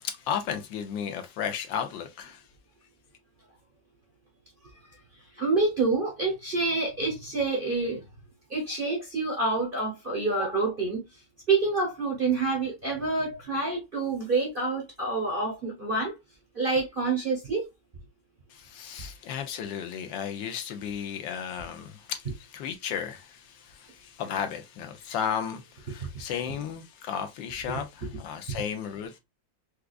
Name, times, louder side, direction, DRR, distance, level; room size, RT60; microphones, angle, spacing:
voice 1, 0.0-2.4 18.5-29.2, left 8 dB, 75° left, 1.3 m, -34 dB
voice 2, 5.3-8.0 8.5-11.0 11.5-16.1 16.5-17.7, right 3 dB, 40° right, 0.8 m, -27 dB
4.7 x 2.3 x 2.3 m
omnidirectional pair, 2.1 m